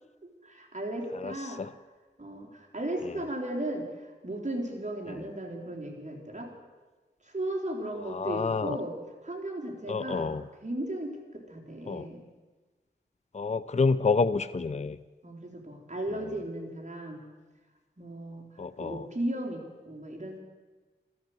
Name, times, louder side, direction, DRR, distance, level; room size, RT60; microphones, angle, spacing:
voice 1, 0.4-1.6 2.2-6.5 7.2-8.9 9.2-10.4 10.6-12.2 15.2-17.2 18.0-18.5 18.8-20.4, right 1 dB, 40° right, -1 dB, 3.7 m, -36 dB
voice 2, 8.1-8.8 9.9-10.4 11.9-12.1 13.3-15.0 18.6-19.1, left 4 dB, 35° left, 14 dB, 0.5 m, -28 dB
13.5 x 13.5 x 7.9 m, 1.3 s
wide cardioid pair, 45°, 19 cm